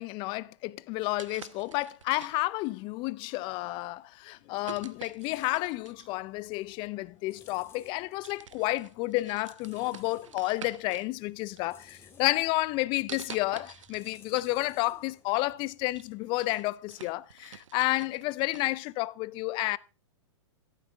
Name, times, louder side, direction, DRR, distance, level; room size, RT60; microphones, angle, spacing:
voice 1, 0.0-19.8, left 20 dB, 30° left, 0.5 m, -31 dB
sound 1, 1.0-2.7 3.4-3.6 4.6-6.2 7.3-7.4 7.8-11.1 11.5-12.2 13.1-14.5 14.9-15.0 15.5-18.8, right 8 dB, 85° right, 1.0 m, -48 dB
sound 2, 4.2-16.9, left 5 dB, 15° left, 2.8 m, -60 dB
13.0 x 11.5 x 3.5 m
hypercardioid pair, 135°, 16 cm